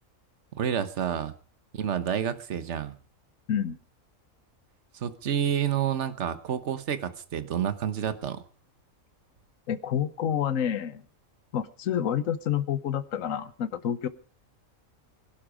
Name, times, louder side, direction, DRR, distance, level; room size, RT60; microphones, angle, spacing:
voice 1, 0.6-1.3 1.7-3.0 4.9-8.4, right 8 dB, 60° right, 12 dB, 1.4 m, -29 dB
voice 2, 9.7-11.0 11.5-14.1, left 9 dB, 75° left, 14 dB, 1.3 m, -28 dB
21.5 x 12.0 x 5.1 m, 0.41 s
omnidirectional pair, 1.4 m